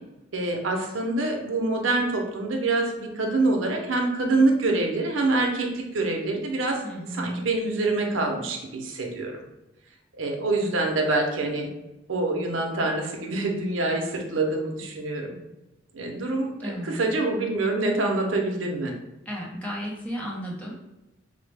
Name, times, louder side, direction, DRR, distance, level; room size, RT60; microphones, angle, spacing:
voice 1, 0.3-6.8 7.1-9.4 10.2-11.7 12.1-15.3 15.9-18.9, right 2 dB, 80° right, 2 dB, 0.6 m, -26 dB
voice 2, 6.8-7.5 10.6-10.8 16.6-17.1 19.3-20.7, equal, 10° left, -4 dB, 0.7 m, -34 dB
4.0 x 2.0 x 3.3 m, 0.97 s
head